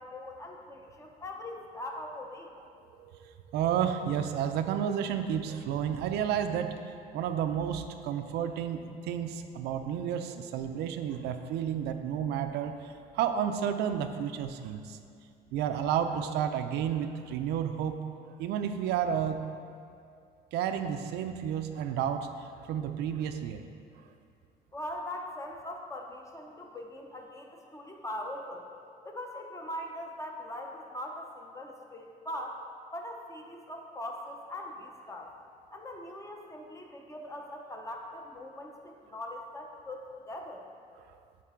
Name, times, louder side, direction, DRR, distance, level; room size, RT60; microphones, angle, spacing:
voice 1, 0.0-2.5 24.7-28.7 29.0-32.6 32.9-35.3 35.7-40.6, left 1 dB, 20° left, 2 dB, 0.7 m, -41 dB
voice 2, 2.9-6.8 7.1-15.0 15.5-18.0 18.2-19.4 20.5-23.6 41.0-41.1, right 8 dB, 80° right, 7 dB, 0.4 m, -31 dB
8.3 x 4.1 x 3.7 m, 2.4 s
cardioid pair, 110°, 17 cm